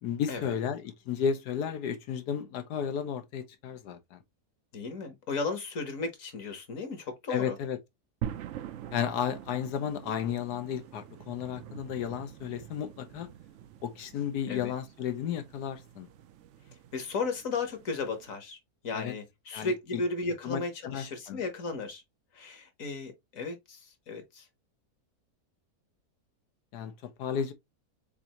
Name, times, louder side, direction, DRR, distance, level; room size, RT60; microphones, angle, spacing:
voice 1, 0.0-4.2 7.3-7.8 8.9-13.3 13.8-16.1 18.9-19.1 19.5-20.0 20.4-21.4 26.7-27.5, left 8 dB, 85° left, 1.4 m, -33 dB
voice 2, 4.7-7.6 14.5-14.7 16.9-22.0 22.3-24.5, left 3 dB, 60° left, 1.5 m, -35 dB
sound 1, 8.2-18.4, right 10 dB, 65° right, 0.7 m, -45 dB
6.7 x 2.6 x 2.9 m
omnidirectional pair, 1.6 m